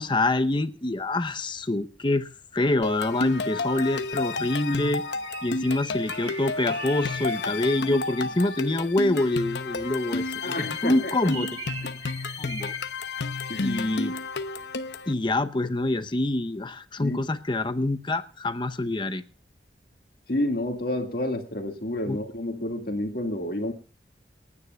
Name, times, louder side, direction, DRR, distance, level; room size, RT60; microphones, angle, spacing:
voice 1, 0.0-5.0 5.4-11.5 12.4-12.7 13.6-14.1 15.1-19.2 22.1-22.2, left 2 dB, 25° left, 0.8 m, -26 dB
sound 1, 2.8-15.1, left 3 dB, 75° left, 0.9 m, -31 dB
Bird, 4.8-8.9 10.5-14.1, right 3 dB, 30° right, 1.5 m, -42 dB
voice 2, 10.4-11.1 11.8-11.9 13.5-13.7 17.0-17.2 20.3-23.7, left 1 dB, 60° left, 2.1 m, -29 dB
28.5 x 9.7 x 2.4 m
head